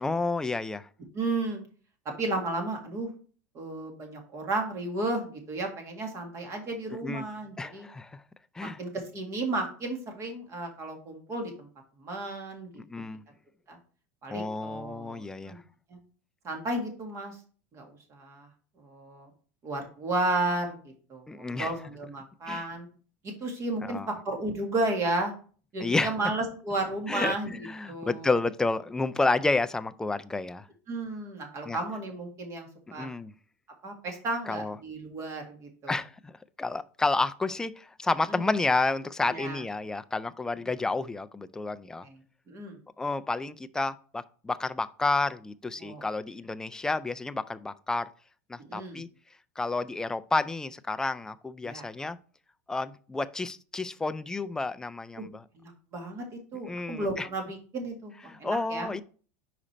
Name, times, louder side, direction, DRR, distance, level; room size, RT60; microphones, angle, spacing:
voice 1, 0.0-0.9 6.9-7.2 7.6-8.2 8.6-8.8 12.8-13.2 14.3-15.6 21.3-21.7 22.5-22.7 23.8-24.2 25.8-26.1 27.1-30.7 31.7-31.8 32.9-33.3 34.5-34.8 35.9-36.3 36.6-42.1 43.0-48.1 48.5-49.1 49.6-52.2 52.7-55.4 56.7-57.3 58.3-59.0, left 3 dB, 5° left, 0.3 m, -30 dB
voice 2, 1.1-1.7 2.2-3.1 3.6-7.9 8.6-11.7 12.0-12.7 13.7-13.8 14.2-15.6 15.9-16.0 16.4-17.4 17.7-18.5 18.8-19.3 19.6-20.8 21.1-22.9 23.2-25.3 25.7-27.5 27.9-28.3 30.9-33.1 33.8-36.0 38.3-38.4 39.3-39.6 42.0-42.2 42.5-42.8 45.8-46.0 48.7-49.0 51.6-51.9 55.2-55.3 55.5-58.1 58.4-58.9, right 2 dB, 35° right, 1.9 m, -33 dB
5.0 x 5.0 x 4.3 m
supercardioid pair, 130°, 9 cm